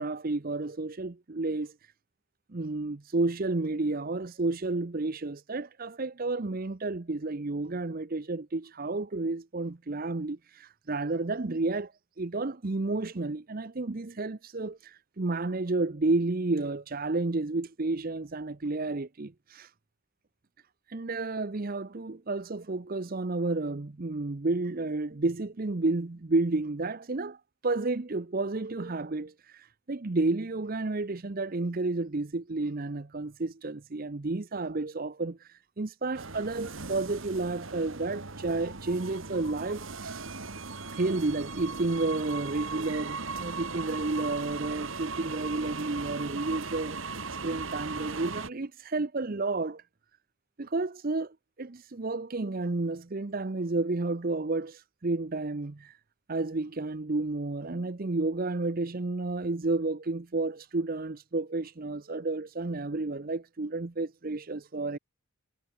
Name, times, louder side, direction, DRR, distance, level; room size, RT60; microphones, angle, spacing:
voice 1, 0.0-1.7 2.5-11.9 12.2-19.7 20.9-27.4 27.6-29.3 29.9-35.4 35.8-40.2 40.9-47.0 47.4-49.8 50.6-55.9 56.3-65.0, right 3 dB, 40° right, 0.7 m, -31 dB
sound 1, 36.1-48.5, right 4 dB, 65° right, 2.0 m, -38 dB
head